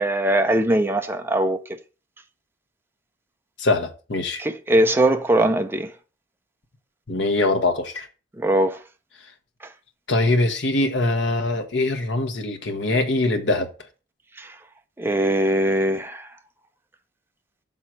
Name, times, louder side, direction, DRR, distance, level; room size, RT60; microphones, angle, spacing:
voice 1, 0.0-1.6 4.4-5.9 8.4-8.8 14.4-14.5 15.0-16.3, right 1 dB, 10° right, 0.5 m, -21 dB
voice 2, 3.6-4.4 7.1-8.1 10.1-13.7, left 2 dB, 85° left, 1.1 m, -22 dB
6.2 x 3.7 x 5.9 m
head